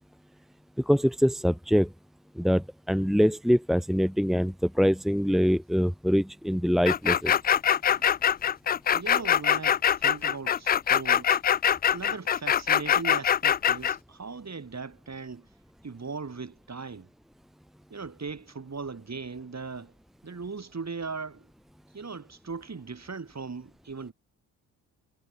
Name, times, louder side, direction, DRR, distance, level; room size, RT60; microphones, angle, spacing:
voice 1, 0.8-1.9 2.4-7.4, equal, ahead, 1.9 m, -24 dB
sound 1, 6.9-14.0, left 9 dB, 20° left, 0.4 m, -23 dB
voice 2, 8.9-11.4 11.9-15.5 15.8-17.1 17.9-19.9 20.2-21.5 21.9-24.1, right 4 dB, 30° right, 7.5 m, -39 dB
figure-of-eight pair, 40°, 50 cm